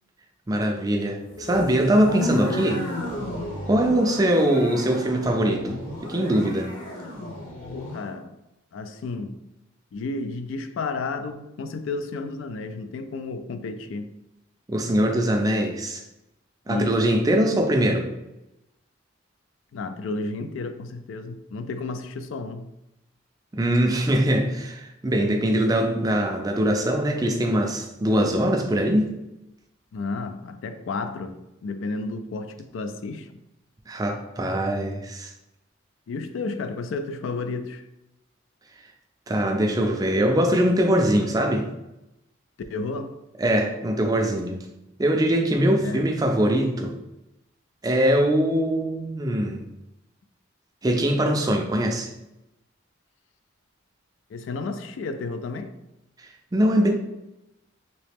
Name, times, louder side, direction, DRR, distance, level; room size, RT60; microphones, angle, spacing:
voice 1, 0.5-2.9 3.7-6.7 14.7-16.0 16.7-18.1 23.5-29.1 33.9-35.3 39.3-41.7 43.4-44.7 45.0-46.9 47.8-49.6 50.8-52.1 56.2-56.9, right 1 dB, 20° right, 0.3 m, -22 dB
sound 1, 1.3-8.1, left 1 dB, 40° left, 0.9 m, -33 dB
voice 2, 7.7-8.4 8.7-9.4 9.9-14.1 16.7-17.0 19.7-22.7 29.9-33.4 36.1-37.8 42.7-43.2 45.8-46.1 54.3-55.7, left 3 dB, 70° left, 0.3 m, -32 dB
3.1 x 2.9 x 3.4 m
head